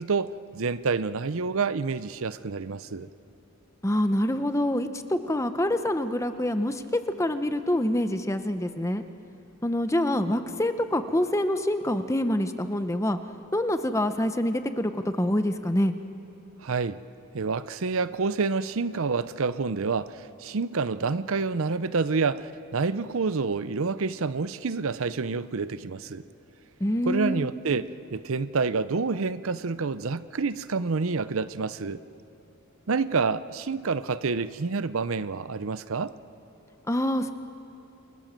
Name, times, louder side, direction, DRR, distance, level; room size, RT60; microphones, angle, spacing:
voice 1, 0.0-3.1 16.6-17.0 17.3-26.2 27.1-32.0 32.9-36.1, right 4 dB, 70° right, 14 dB, 0.6 m, -28 dB
voice 2, 3.8-9.0 9.6-13.2 13.5-15.9 26.8-27.5 36.9-37.3, left 1 dB, 15° left, 9 dB, 0.8 m, -26 dB
28.5 x 24.0 x 7.6 m, 2.9 s
head